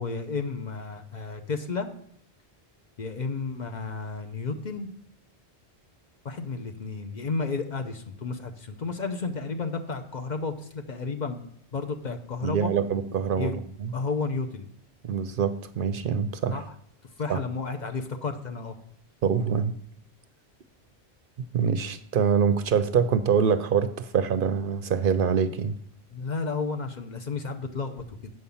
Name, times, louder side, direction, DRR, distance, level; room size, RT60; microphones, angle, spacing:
voice 1, 0.0-1.9 3.0-4.9 6.2-12.7 13.4-13.6 13.9-14.7 16.5-16.6 17.2-18.8 26.1-28.3, left 4 dB, 45° left, 6 dB, 0.8 m, -32 dB
voice 2, 12.4-13.9 15.0-16.6 17.3-17.4 19.2-19.8 21.4-25.7, right 7 dB, 60° right, 11 dB, 0.7 m, -25 dB
7.9 x 5.5 x 7.0 m, 0.66 s
omnidirectional pair, 1.1 m